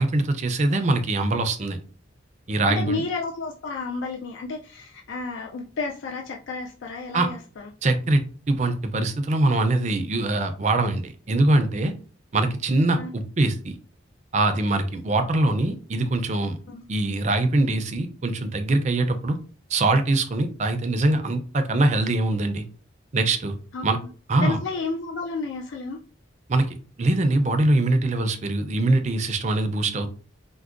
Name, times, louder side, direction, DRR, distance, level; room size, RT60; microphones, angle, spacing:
voice 1, 0.0-1.8 2.5-3.0 7.1-7.3 7.8-8.2 8.5-11.9 12.3-13.7 14.3-16.6 16.9-19.4 19.7-22.6 23.1-23.5 23.8-24.0 24.3-24.6 26.5-26.7 27.0-30.1, right 2 dB, 35° right, 7 dB, 0.4 m, -23 dB
voice 2, 2.7-7.4 12.9-13.1 16.7-16.8 23.7-24.1 24.4-26.0, left 3 dB, 70° left, 1 dB, 0.4 m, -31 dB
4.4 x 2.1 x 2.4 m, 0.38 s
head